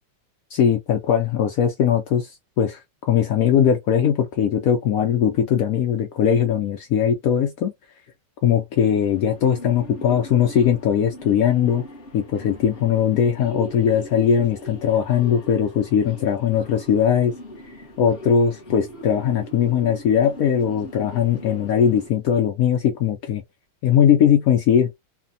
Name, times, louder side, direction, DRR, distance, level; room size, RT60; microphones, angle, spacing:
voice 1, 0.5-7.7 8.4-11.8 12.1-17.3 18.0-23.4 23.8-24.9, left 8 dB, 80° left, 0.7 m, -20 dB
sound 1, 8.7-22.1, equal, 40° left, 0.9 m, -40 dB
3.3 x 2.1 x 2.6 m
omnidirectional pair, 2.1 m